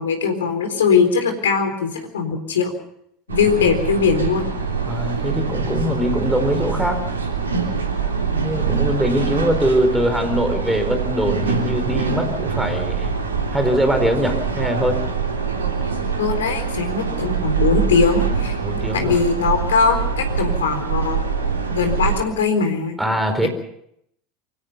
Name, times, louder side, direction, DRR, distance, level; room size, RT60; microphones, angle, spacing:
voice 1, 0.0-2.7 3.3-4.5 16.2-21.2 21.7-23.0 23.4-23.5, left 5 dB, 70° left, 6 dB, 4.0 m, -20 dB
sound 1, 3.3-22.2, right 5 dB, 80° right, 3.2 m, -24 dB
voice 2, 4.9-7.0 8.2-13.1 13.5-15.0 18.6-19.2 23.0-23.5, equal, 5° right, 7 dB, 4.4 m, -22 dB
24.0 x 17.0 x 6.9 m, 0.73 s
figure-of-eight pair, 75°, 0 cm